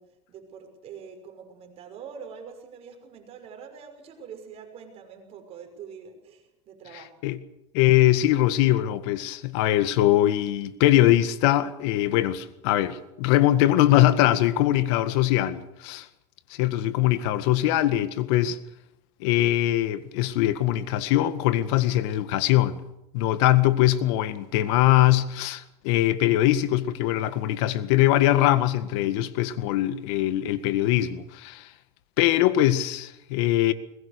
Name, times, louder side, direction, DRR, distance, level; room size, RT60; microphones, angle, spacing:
voice 1, 0.0-7.3 23.5-23.6, right 6 dB, 45° right, 5.8 m, -44 dB
voice 2, 7.7-16.1 16.5-18.6 19.2-22.8 23.1-31.7 32.2-33.7, left 14 dB, 70° left, 1.8 m, -22 dB
22.5 x 20.5 x 6.7 m
supercardioid pair, 120°, 15 cm